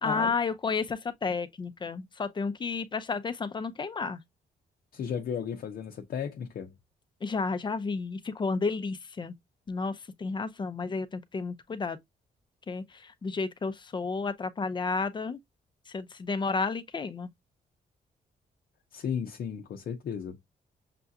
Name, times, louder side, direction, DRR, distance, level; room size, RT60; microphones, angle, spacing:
voice 1, 0.0-4.2 7.2-9.3 9.7-12.0 12.7-15.4 15.9-17.3, left 4 dB, 30° left, 0.6 m, -32 dB
voice 2, 4.9-6.7 18.9-20.4, left 7 dB, 65° left, 0.7 m, -34 dB
6.7 x 2.4 x 2.6 m
cardioid pair, 115°, 17 cm